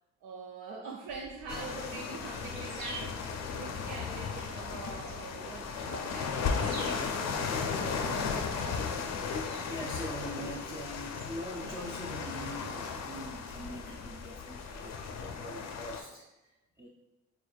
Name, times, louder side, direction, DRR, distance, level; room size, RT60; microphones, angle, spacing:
voice 1, 0.2-8.9, right 4 dB, 85° right, 0 dB, 0.5 m, -44 dB
sound 1, 1.1-15.4, right 1 dB, 60° right, 1.1 m, -51 dB
sound 2, 1.5-16.0, left 5 dB, 60° left, 0.5 m, -36 dB
voice 2, 9.2-16.9, equal, 10° right, -2 dB, 0.4 m, -43 dB
3.9 x 3.3 x 2.3 m, 0.97 s
cardioid pair, 90°, 30 cm